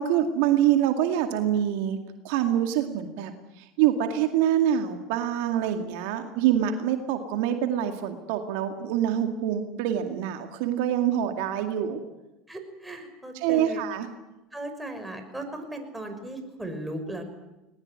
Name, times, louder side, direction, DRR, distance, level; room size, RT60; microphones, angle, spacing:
voice 1, 0.0-2.0 2.2-12.0 13.4-14.1, right 10 dB, 70° right, 6 dB, 2.2 m, -25 dB
voice 2, 12.5-13.8 14.5-17.2, right 1 dB, 5° right, 5 dB, 5.9 m, -37 dB
20.5 x 20.0 x 9.6 m, 1.0 s
hypercardioid pair, 85°, 0 cm